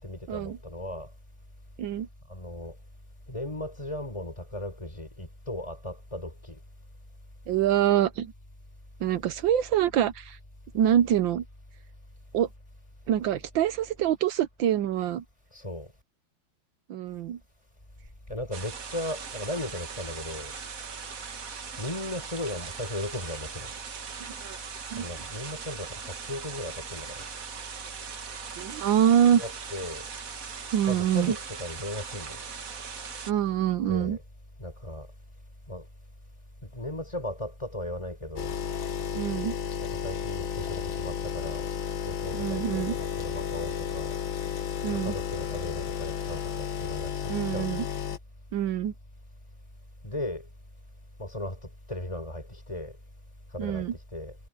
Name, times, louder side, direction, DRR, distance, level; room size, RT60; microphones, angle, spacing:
voice 1, 0.0-1.1 2.3-2.8 3.3-6.6 15.5-15.9 18.3-20.5 21.8-23.7 24.9-27.3 29.4-30.1 30.9-32.4 33.9-34.2 34.6-35.1 35.7-35.9 36.6-38.6 39.9-41.7 42.0-44.2 44.9-47.7 50.0-50.5 51.2-53.0 53.5-54.4, left 1 dB, 15° left, 4.7 m, -37 dB
voice 2, 7.5-8.3 9.0-10.4 10.7-11.4 12.3-12.5 13.1-15.2 16.9-17.4 24.4-24.6 24.9-25.1 28.5-29.4 30.7-31.4 33.3-34.2 39.1-39.5 42.3-42.9 44.8-45.1 47.3-47.8 48.5-48.9 53.6-53.9, right 10 dB, 75° right, 1.5 m, -25 dB
sound 1, 18.5-33.3, right 6 dB, 45° right, 1.7 m, -40 dB
sound 2, 38.4-48.2, left 8 dB, 80° left, 2.2 m, -33 dB
omnidirectional pair, 2.1 m